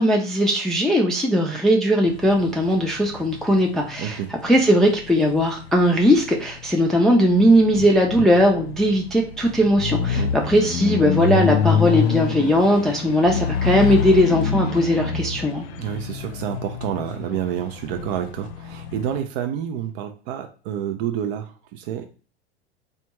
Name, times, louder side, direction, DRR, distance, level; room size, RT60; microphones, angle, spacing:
voice 1, 0.0-15.6, equal, ahead, 1 dB, 0.3 m, -19 dB
sound 1, 2.1-19.2, left 6 dB, 80° left, 0.5 m, -27 dB
voice 2, 4.0-4.3 10.1-10.4 15.8-22.1, right 10 dB, 60° right, 6 dB, 0.5 m, -29 dB
3.3 x 2.3 x 2.9 m, 0.38 s
hypercardioid pair, 95°, 31 cm